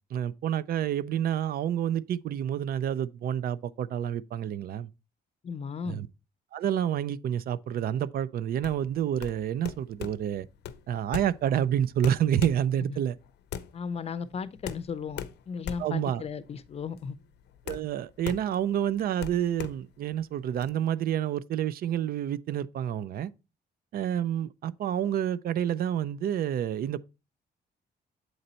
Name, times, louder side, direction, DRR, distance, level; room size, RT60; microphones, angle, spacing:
voice 1, 0.1-4.9 5.9-6.1 6.5-10.5 10.9-13.2 15.8-16.2 17.7-23.3 23.9-27.0, right 10 dB, 60° right, 0.4 m, -29 dB
voice 2, 5.4-6.0 13.7-17.2, left 6 dB, 35° left, 0.5 m, -36 dB
sound 1, 8.5-20.7, left 9 dB, 85° left, 0.6 m, -41 dB
7.8 x 4.0 x 4.2 m
cardioid pair, 125°, 17 cm